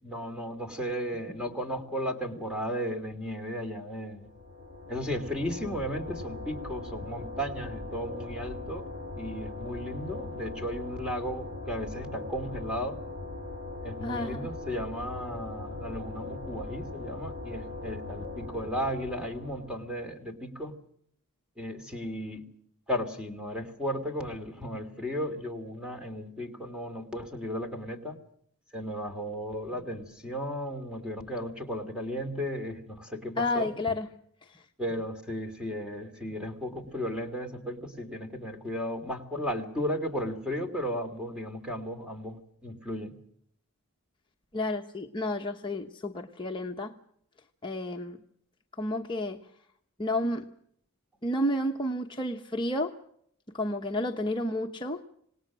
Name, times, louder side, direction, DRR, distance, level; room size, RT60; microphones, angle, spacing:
voice 1, 0.0-4.3 4.9-13.0 13.8-20.8 21.6-22.5 22.9-28.2 28.7-33.7 34.8-43.2, equal, 5° right, 5 dB, 2.8 m, -35 dB
sound 1, 4.2-20.1, left 2 dB, 45° right, 6.2 m, -40 dB
voice 2, 14.0-14.5 33.4-34.1 34.4-34.6 44.5-46.9 47.6-48.2 48.8-49.4 50.0-50.5 51.2-52.9 53.5-55.0, left 1 dB, 20° left, 1 dB, 1.1 m, -31 dB
26.5 x 19.5 x 6.3 m, 0.68 s
head